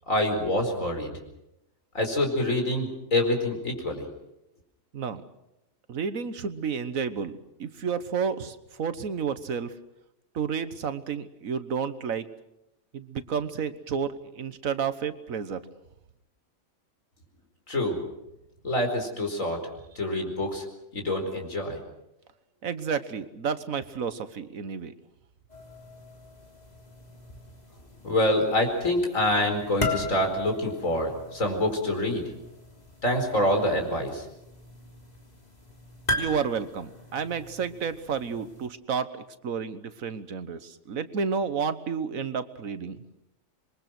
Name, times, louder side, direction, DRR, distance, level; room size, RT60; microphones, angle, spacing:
voice 1, 0.1-1.1 2.0-4.1 17.7-18.0 18.6-19.6 20.0-20.6 20.9-21.8 28.0-32.2 33.0-34.2, left 1 dB, 75° left, 4 dB, 5.1 m, -26 dB
voice 2, 5.9-7.3 7.6-9.7 10.4-12.2 12.9-15.6 22.6-24.9 36.1-40.6 40.9-43.0, right 6 dB, 85° right, 12 dB, 1.6 m, -31 dB
sound 1, 25.5-38.7, left 2 dB, 30° left, 3.5 m, -38 dB
26.5 x 22.5 x 6.1 m, 0.88 s
omnidirectional pair, 1.4 m